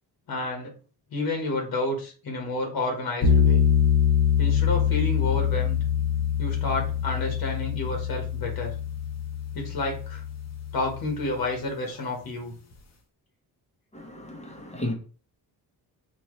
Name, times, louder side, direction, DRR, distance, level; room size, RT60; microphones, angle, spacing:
voice 1, 0.3-0.7 1.1-3.6 4.4-5.8 6.4-8.7 9.5-10.2 10.7-12.5, left 2 dB, 65° left, 1.5 m, -30 dB
sound 1, 3.2-11.4, left 8 dB, 40° left, 1.0 m, -24 dB
voice 2, 13.9-14.9, left 1 dB, 15° left, 1.0 m, -33 dB
4.3 x 2.7 x 3.2 m
cardioid pair, 120°, 40 cm